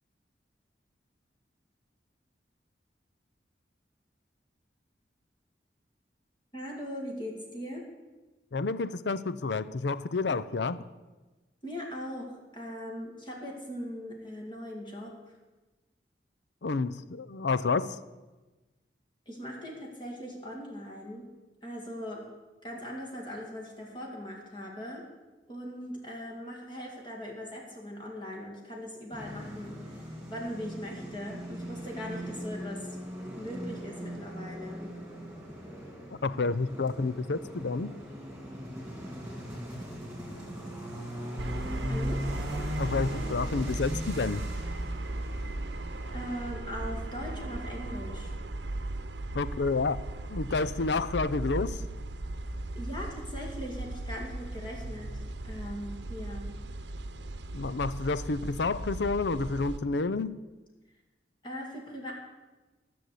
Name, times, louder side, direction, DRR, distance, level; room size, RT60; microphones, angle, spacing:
voice 1, 6.5-7.8 11.6-12.3 12.5-15.1 19.3-21.3 21.6-22.3 22.6-25.1 25.5-32.9 33.4-34.8 41.9-42.2 46.1-48.3 52.8-56.5 61.4-62.1, equal, 25° left, -2 dB, 2.3 m, -40 dB
voice 2, 8.5-10.8 16.6-18.0 36.2-37.9 42.8-44.5 49.3-50.0 50.3-51.8 57.5-60.3, left 3 dB, 75° left, 14 dB, 0.6 m, -29 dB
sound 1, 29.1-46.5, equal, 5° right, 3.4 m, -40 dB
sound 2, 41.4-59.8, right 2 dB, 80° right, 0.8 m, -37 dB
14.0 x 6.6 x 8.4 m, 1.2 s
head